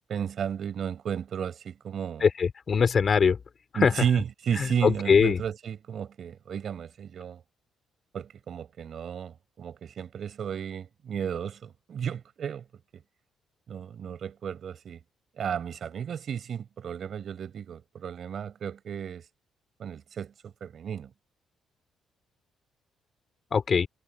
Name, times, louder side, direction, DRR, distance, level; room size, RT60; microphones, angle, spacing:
voice 1, 0.1-2.3 3.7-7.4 8.1-12.7 12.9-13.0 13.7-15.0 15.3-19.3 19.8-21.1, right 8 dB, 60° right, 5.4 m, -33 dB
voice 2, 2.2-3.4 3.8-3.9 4.8-5.4 23.5-23.9, left 6 dB, 45° left, 4.7 m, -21 dB
cardioid pair, 90°, 0 cm